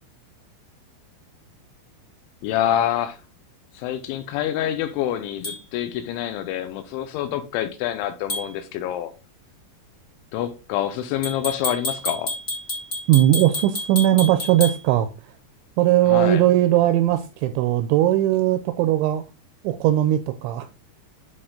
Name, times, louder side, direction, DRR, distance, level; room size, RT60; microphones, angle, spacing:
voice 1, 2.4-3.2 3.7-9.1 10.3-12.3 16.1-16.4, left 11 dB, 85° left, 2.8 m, -26 dB
sound 1, 5.4-5.6 8.3-8.5 11.2-14.8, left 1 dB, 40° left, 1.1 m, -29 dB
voice 2, 13.1-15.3 15.8-19.2 19.6-20.7, right 13 dB, 85° right, 2.6 m, -19 dB
10.0 x 4.2 x 3.7 m
omnidirectional pair, 5.7 m